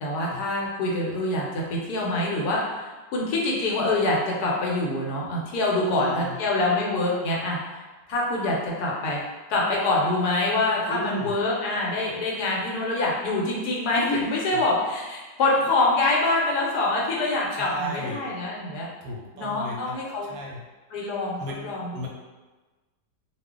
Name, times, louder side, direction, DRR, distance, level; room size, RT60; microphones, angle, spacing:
voice 1, 0.0-7.6 8.1-9.2 9.5-18.9 19.3-20.3 20.9-22.1, left 2 dB, 75° left, -3 dB, 1.1 m, -25 dB
voice 2, 5.8-6.4 10.9-11.4 14.5-14.6 17.5-18.2 19.0-20.0 20.3-20.6 21.4-21.6 21.9-22.1, right 1 dB, 70° right, -2 dB, 0.9 m, -34 dB
2.5 x 2.3 x 3.5 m, 1.2 s
omnidirectional pair, 1.8 m